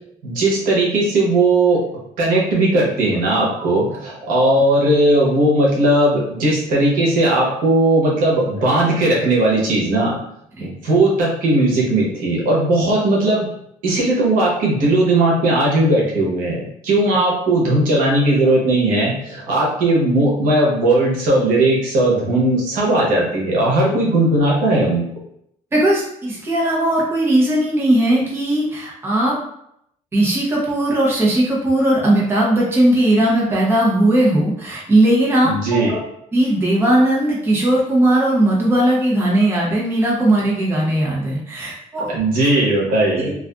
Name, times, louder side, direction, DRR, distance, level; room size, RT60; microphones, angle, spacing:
voice 1, 0.2-1.8 2.2-10.2 10.6-13.5 13.8-25.0 35.4-35.9 42.1-43.3, right 1 dB, 85° right, -3 dB, 0.9 m, -17 dB
voice 2, 25.7-29.4 30.1-36.0 36.3-42.1 43.2-43.3, right 1 dB, 15° right, -5 dB, 0.7 m, -18 dB
2.4 x 2.4 x 2.3 m, 0.73 s
cardioid pair, 130°, 14 cm